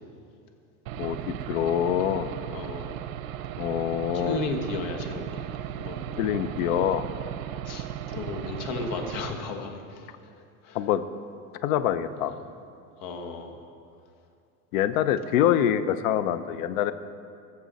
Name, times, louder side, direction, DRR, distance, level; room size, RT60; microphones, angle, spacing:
Aircraft / Engine, 0.9-9.3, right 11 dB, 75° right, 0.8 m, -36 dB
voice 1, 1.0-2.4 3.6-4.4 6.2-7.0 10.7-11.0 11.6-12.3 14.7-16.9, left 10 dB, 75° left, 12 dB, 0.8 m, -25 dB
voice 2, 2.5-3.0 4.1-6.3 7.5-10.8 12.3-12.4 13.0-13.6, left 3 dB, 50° left, 4 dB, 1.7 m, -35 dB
21.0 x 7.1 x 4.1 m, 2.4 s
supercardioid pair, 130°, 41 cm